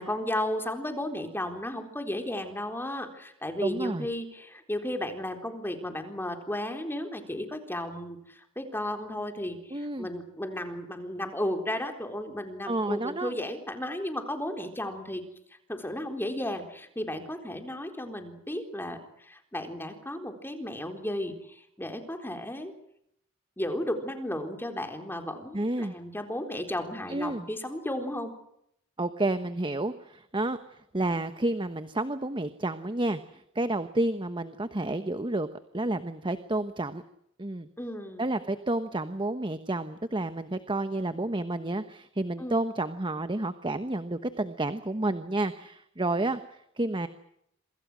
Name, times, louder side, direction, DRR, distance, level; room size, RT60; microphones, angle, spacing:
voice 1, 0.0-15.2 15.7-22.7 23.6-28.3 37.8-38.3 42.4-42.6, left 1 dB, 10° left, 5 dB, 4.0 m, -34 dB
voice 2, 3.6-4.1 9.7-10.1 12.7-13.3 25.5-26.0 27.1-27.4 29.0-35.5 35.7-37.0 37.4-37.7 38.2-47.1, right 2 dB, 25° right, 11 dB, 1.1 m, -30 dB
27.0 x 25.0 x 6.3 m, 0.74 s
head